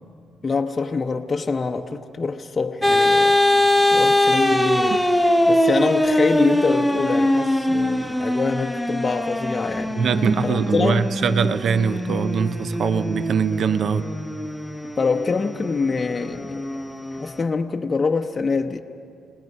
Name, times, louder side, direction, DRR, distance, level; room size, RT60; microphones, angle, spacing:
voice 1, 0.4-3.4 3.9-5.0 5.5-10.0 10.4-11.1 15.0-16.7 17.1-18.8, left 4 dB, 30° left, 0.8 m, -25 dB
sound 1, 2.8-17.4, left 1 dB, ahead, 0.8 m, -22 dB
voice 2, 9.9-14.1, right 6 dB, 60° right, 0.6 m, -22 dB
29.5 x 18.5 x 5.5 m
cardioid pair, 90°, 0 cm